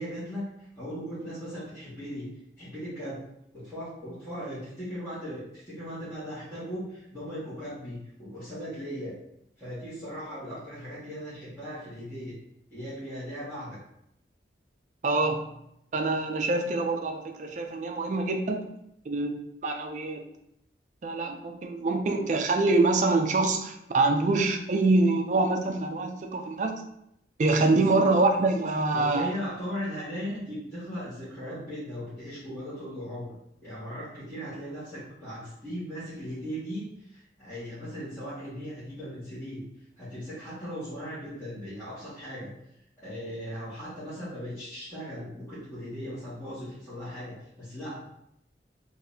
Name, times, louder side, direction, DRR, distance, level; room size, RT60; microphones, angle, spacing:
voice 1, 0.0-2.3 2.6-3.2 3.5-9.1 9.6-12.3 12.7-13.8 27.7-28.0 28.9-33.3 33.6-36.8 37.1-39.6 40.0-42.5 43.0-48.1, equal, 15° left, -16 dB, 1.5 m, -38 dB
voice 2, 15.0-15.4 15.9-18.7 19.1-19.3 19.6-20.3 21.0-26.7 27.4-29.3, right 3 dB, 45° right, 4 dB, 0.4 m, -25 dB
4.0 x 2.6 x 2.6 m, 0.78 s
head